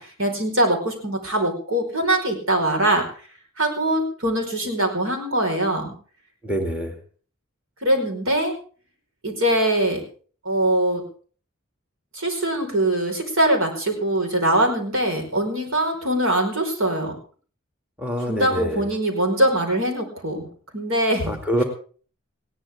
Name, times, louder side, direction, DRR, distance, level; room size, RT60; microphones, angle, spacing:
voice 1, 0.0-3.0 3.6-5.9 7.8-8.5 9.2-10.0 10.4-11.0 12.1-17.2 18.3-20.5 20.7-21.3, right 1 dB, 70° right, 3 dB, 4.8 m, -22 dB
voice 2, 6.4-6.9 18.0-18.8 21.3-21.6, equal, 5° right, 3 dB, 2.3 m, -25 dB
20.0 x 16.5 x 3.7 m, 0.42 s
head